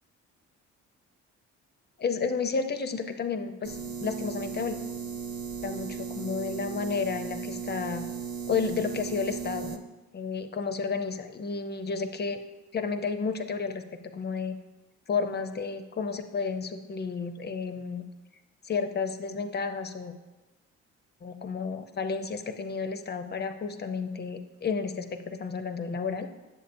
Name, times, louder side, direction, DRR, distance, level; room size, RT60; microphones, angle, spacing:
voice 1, 2.0-4.8 5.6-8.1 8.5-9.8 10.1-12.4 12.7-13.8 14.1-14.6 15.1-18.0 18.6-20.1 21.2-26.3, left 5 dB, 35° left, 8 dB, 0.6 m, -31 dB
sound 1, 3.6-9.8, right 6 dB, 50° right, 0.7 m, -36 dB
8.0 x 7.3 x 2.6 m, 1.1 s
cardioid pair, 90°, 30 cm